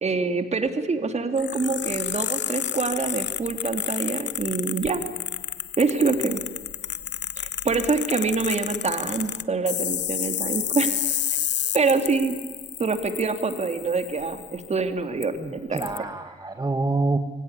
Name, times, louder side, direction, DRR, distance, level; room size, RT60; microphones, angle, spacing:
voice 1, 0.0-5.0 5.8-6.4 7.4-10.9 11.7-12.3 12.8-15.3 15.7-15.8, right 4 dB, 35° right, 8 dB, 3.0 m, -25 dB
sound 1, 1.4-14.7 15.2-15.3 15.8-16.0, left 11 dB, 65° left, 1.0 m, -30 dB
voice 2, 15.3-17.2, right 3 dB, 20° right, 7 dB, 1.5 m, -27 dB
24.0 x 18.0 x 9.9 m, 1.4 s
cardioid pair, 90°, 20 cm